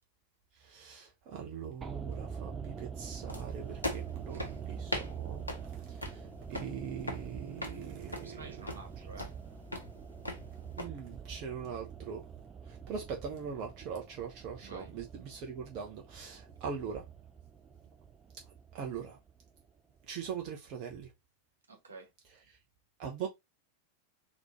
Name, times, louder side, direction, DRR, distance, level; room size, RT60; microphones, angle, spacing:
voice 1, 0.5-8.4 10.8-12.2 12.6-17.1 18.7-19.2 20.1-21.1 22.5-22.6 23.0-23.3, right 6 dB, 40° right, 0.9 m, -41 dB
sound 1, 1.8-20.0 20.3-20.4, right 7 dB, 20° right, 0.6 m, -45 dB
sound 2, 3.3-10.9, left 1 dB, 85° left, 1.0 m, -42 dB
voice 2, 4.3-4.6 8.2-9.3 10.3-10.4 14.6-14.9 21.7-22.1, right 3 dB, 75° right, 1.4 m, -50 dB
4.2 x 3.0 x 3.1 m
figure-of-eight pair, 90°, 0 cm